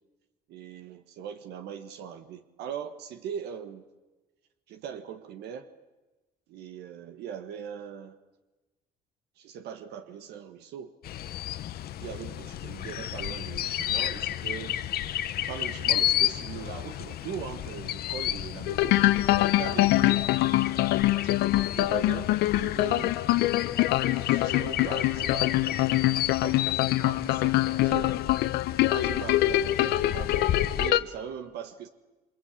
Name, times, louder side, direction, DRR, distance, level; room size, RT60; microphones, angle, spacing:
voice 1, 0.5-3.8 4.7-5.7 6.5-8.2 9.4-11.0 12.0-14.8 15.5-19.0 19.3-20.3 21.7-23.2 24.2-28.2 28.9-31.9, right 8 dB, 75° right, 8 dB, 1.6 m, -40 dB
sound 1, 11.0-30.9, left 12 dB, 65° left, 1.1 m, -32 dB
sound 2, 18.7-31.0, left 16 dB, 85° left, 1.0 m, -24 dB
28.0 x 25.0 x 8.5 m, 1.2 s
cardioid pair, 110°, 17 cm